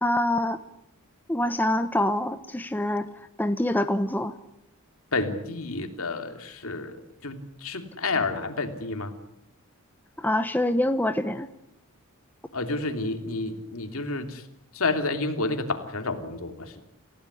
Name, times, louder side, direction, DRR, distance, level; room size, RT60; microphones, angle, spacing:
voice 1, 0.0-0.6 1.3-3.1 3.4-4.4 10.2-11.5, left 1 dB, 10° left, 9 dB, 0.9 m, -25 dB
voice 2, 5.1-9.1 12.5-14.5 14.7-16.8, left 3 dB, 65° left, 6 dB, 3.2 m, -30 dB
29.0 x 16.5 x 10.0 m, 0.81 s
head